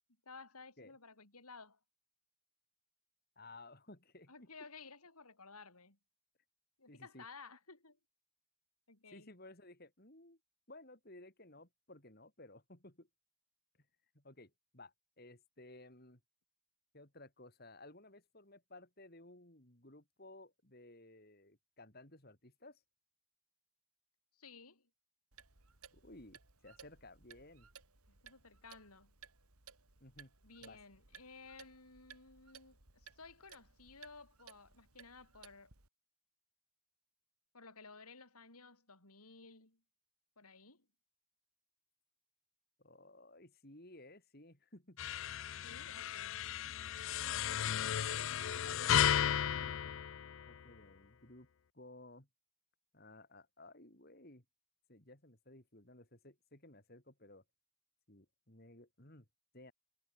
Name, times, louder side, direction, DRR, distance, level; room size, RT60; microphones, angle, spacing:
voice 1, 0.3-1.8 4.3-6.0 6.8-8.0 8.9-9.3 24.3-24.9 28.1-29.1 30.4-35.7 37.5-39.8 40.4-40.9 45.6-46.5, left 4 dB, 90° left, 5.7 m, -56 dB
voice 2, 3.4-4.5 6.9-7.3 9.1-10.4 10.7-13.1 14.1-16.2 16.9-22.8 25.9-27.7 30.0-30.3 30.6-30.8 42.8-45.1 48.1-49.0 49.4-50.0 50.5-51.5 51.7-52.3 52.9-54.4 54.9-57.4 58.1-59.3 59.5-59.7, left 2 dB, 45° left, 4.1 m, -57 dB
Clock, 25.3-35.9, right 6 dB, 85° right, 3.8 m, -60 dB
sound 1, 45.0-50.8, left 10 dB, 60° left, 0.4 m, -35 dB
head